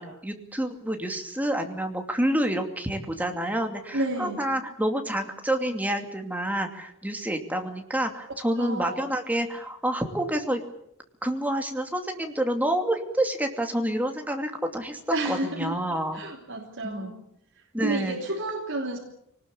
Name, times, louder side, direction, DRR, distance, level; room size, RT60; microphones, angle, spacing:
voice 1, 0.0-10.6 11.2-15.0 15.2-16.2 16.8-17.1 17.7-18.2, right 1 dB, 5° right, 4 dB, 2.6 m, -28 dB
voice 2, 3.9-4.5 8.6-9.0 15.1-15.8 16.1-17.2 17.8-19.0, right 2 dB, 60° right, 0 dB, 3.2 m, -30 dB
25.0 x 19.5 x 8.5 m, 0.73 s
head